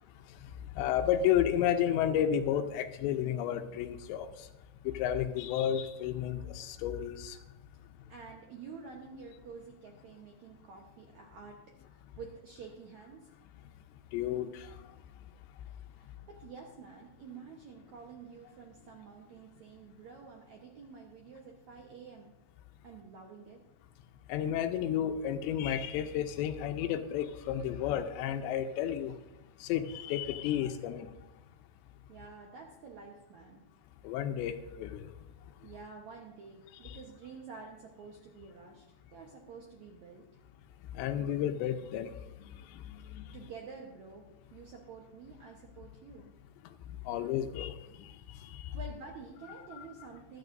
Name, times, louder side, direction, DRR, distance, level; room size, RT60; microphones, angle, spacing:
voice 1, 0.8-4.3 4.8-7.4 14.1-14.7 24.3-29.1 29.6-31.1 34.0-35.1 36.9-37.0 40.9-42.1 42.7-43.3 47.1-48.1 48.5-48.7, left 10 dB, 85° left, 6 dB, 3.0 m, -32 dB
voice 2, 8.1-13.3 15.9-22.3 22.8-23.6 32.1-33.6 35.6-38.8 39.1-40.4 43.3-46.3 48.7-50.4, right 5 dB, 85° right, 0 dB, 1.6 m, -49 dB
24.0 x 9.1 x 2.6 m, 1.0 s
omnidirectional pair, 5.1 m